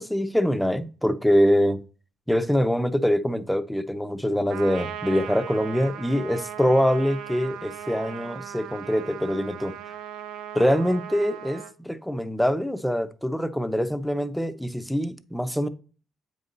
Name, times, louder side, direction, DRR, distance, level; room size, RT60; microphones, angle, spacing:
voice 1, 0.0-1.8 2.3-9.7 10.5-15.7, equal, 5° left, 0.7 m, -24 dB
Trumpet, 4.5-11.7, right 9 dB, 90° right, 0.7 m, -38 dB
8.1 x 5.3 x 3.9 m
cardioid pair, 90°, 0 cm